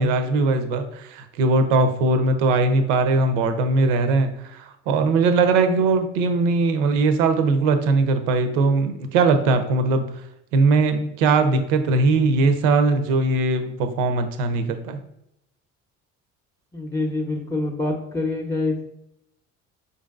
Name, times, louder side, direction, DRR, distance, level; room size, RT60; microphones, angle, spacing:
voice 1, 0.0-10.0 10.5-15.0, right 3 dB, 70° right, 9 dB, 0.6 m, -20 dB
voice 2, 16.7-18.8, left 2 dB, 10° left, 2 dB, 0.6 m, -26 dB
4.5 x 2.6 x 2.3 m, 0.78 s
hypercardioid pair, 55°, 38 cm